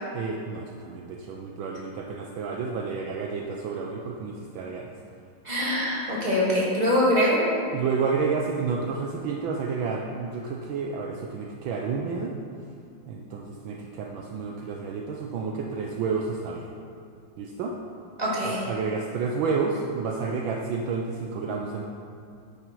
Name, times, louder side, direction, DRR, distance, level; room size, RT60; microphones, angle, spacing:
voice 1, 0.1-4.9 7.7-12.3 13.1-16.7 17.4-17.7 18.4-21.8, right 5 dB, 70° right, 0 dB, 1.5 m, -30 dB
voice 2, 5.4-7.4 18.2-18.6, equal, 20° right, -7 dB, 2.8 m, -23 dB
10.5 x 10.0 x 4.7 m, 2.4 s
omnidirectional pair, 2.3 m